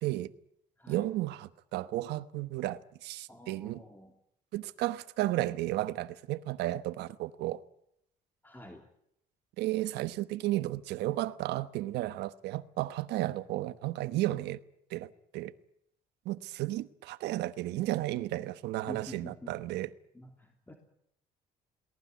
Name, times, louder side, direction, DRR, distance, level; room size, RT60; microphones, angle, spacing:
voice 1, 0.0-0.3 0.9-3.8 4.5-7.6 9.6-14.6 14.9-15.5 16.2-19.9, right 16 dB, 80° right, 1.2 m, -33 dB
voice 2, 0.8-1.1 3.3-4.1 8.4-8.8 18.9-19.5 20.1-20.8, left 1 dB, 10° left, 2.8 m, -48 dB
23.0 x 18.0 x 9.4 m
cardioid pair, 110°, 17 cm